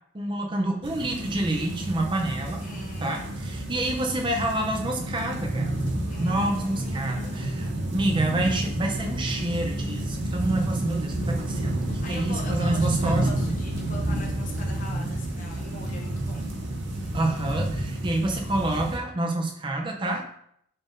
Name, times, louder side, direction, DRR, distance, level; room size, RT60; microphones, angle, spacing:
voice 1, 0.1-2.6 3.0-5.7 6.2-13.3 17.1-20.2, right 1 dB, 25° right, 2 dB, 0.5 m, -28 dB
sound 1, 0.8-19.0, right 1 dB, 55° right, 0.7 m, -30 dB
voice 2, 2.6-3.3 6.1-7.9 11.8-16.5, left 1 dB, 40° left, 0 dB, 0.6 m, -42 dB
4.1 x 3.5 x 2.5 m, 0.70 s
head